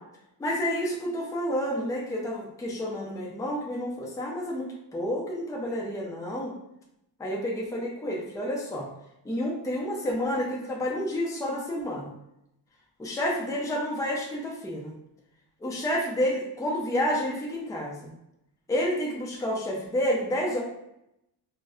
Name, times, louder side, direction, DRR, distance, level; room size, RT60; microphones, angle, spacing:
voice 1, 0.4-6.5 7.2-8.9 9.2-12.1 13.0-14.9 15.6-18.1 18.7-20.6, equal, 10° left, -2 dB, 0.5 m, -29 dB
4.0 x 2.1 x 2.4 m, 0.82 s
cardioid pair, 110°, 44 cm